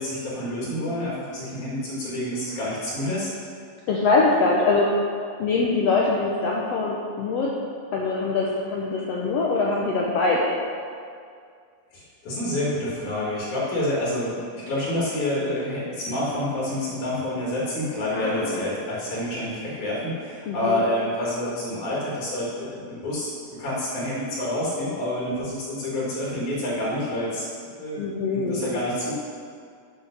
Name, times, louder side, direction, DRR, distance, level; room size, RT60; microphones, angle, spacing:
voice 1, 0.0-3.3 11.9-28.1 28.3-29.1, left 1 dB, 65° left, -6 dB, 3.2 m, -28 dB
voice 2, 3.9-4.9 5.4-7.5 7.9-10.6 18.1-18.6 20.5-20.8 28.0-28.7, left 3 dB, 80° left, -3 dB, 1.4 m, -23 dB
8.1 x 7.1 x 6.3 m, 2.2 s
omnidirectional pair, 4.0 m